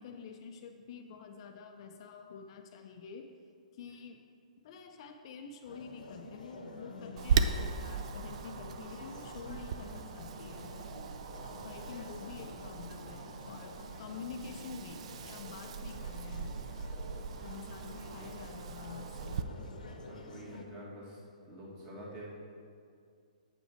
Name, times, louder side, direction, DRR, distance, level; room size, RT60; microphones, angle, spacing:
voice 1, 0.0-3.2 3.7-4.2 4.6-10.7 11.6-16.6 17.4-19.5, left 6 dB, 45° left, 5 dB, 0.5 m, -48 dB
sound 1, 5.6-20.6, left 2 dB, 85° left, 0.9 m, -49 dB
Wind, 7.2-19.4, right 5 dB, 55° right, 0.4 m, -38 dB
voice 2, 19.4-21.2 21.5-22.3, equal, 25° right, -5 dB, 1.9 m, -48 dB
7.9 x 5.5 x 4.5 m, 2.3 s
hypercardioid pair, 150°, 4 cm